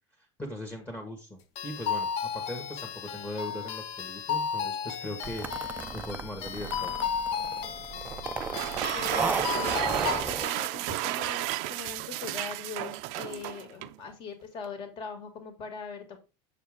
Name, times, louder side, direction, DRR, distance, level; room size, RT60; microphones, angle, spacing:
voice 1, 0.2-6.9, left 1 dB, 10° left, 2 dB, 1.7 m, -40 dB
sound 1, 1.6-10.6, left 7 dB, 55° left, 1.1 m, -34 dB
sound 2, 5.2-10.4, right 5 dB, 15° right, 0.5 m, -35 dB
sound 3, 8.4-14.0, right 17 dB, 60° right, 0.5 m, -32 dB
voice 2, 8.9-16.2, left 5 dB, 40° left, 6 dB, 2.3 m, -41 dB
7.4 x 7.0 x 3.6 m, 0.29 s
cardioid pair, 165°, 13 cm